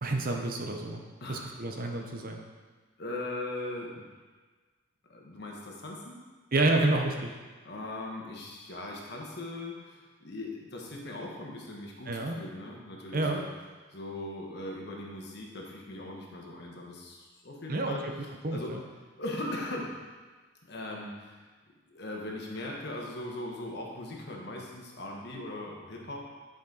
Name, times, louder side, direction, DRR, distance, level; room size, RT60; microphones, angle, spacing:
voice 1, 0.0-1.0 1.3-2.4 6.5-7.3 12.1-12.4 13.1-13.4 17.7-18.0 18.4-18.8, right 2 dB, 45° right, 3 dB, 0.8 m, -29 dB
voice 2, 3.0-4.1 5.1-6.2 7.6-13.5 13.9-18.7 19.2-19.9 20.6-21.5 21.9-26.2, left 1 dB, 55° left, -1 dB, 1.4 m, -39 dB
10.0 x 5.2 x 4.0 m, 1.4 s
head